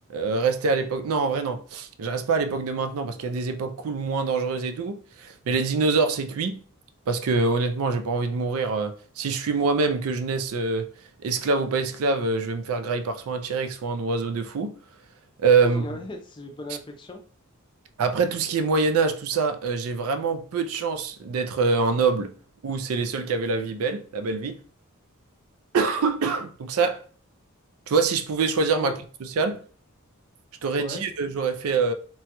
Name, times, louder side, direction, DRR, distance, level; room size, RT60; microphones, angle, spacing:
voice 1, 0.1-6.6 7.1-10.9 11.2-14.7 15.4-15.8 18.0-22.3 22.6-24.6 25.7-27.0 27.9-29.0 29.2-29.6 30.6-31.9, right 4 dB, 75° right, 0.4 m, -25 dB
voice 2, 15.6-17.2 28.8-29.0 30.8-31.0, left 2 dB, 20° left, 0.4 m, -37 dB
2.8 x 2.3 x 2.8 m
head